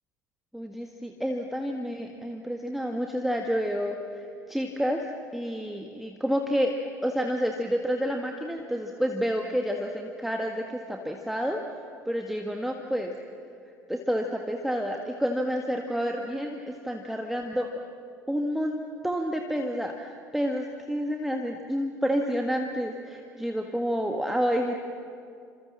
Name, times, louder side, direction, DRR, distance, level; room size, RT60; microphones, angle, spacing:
voice 1, 0.5-5.0 5.3-6.7 7.0-11.8 12.1-13.1 13.9-17.7 18.3-24.7, equal, ahead, 3 dB, 1.7 m, -29 dB
28.0 x 27.0 x 7.4 m, 2.4 s
figure-of-eight pair, 65°, 10 cm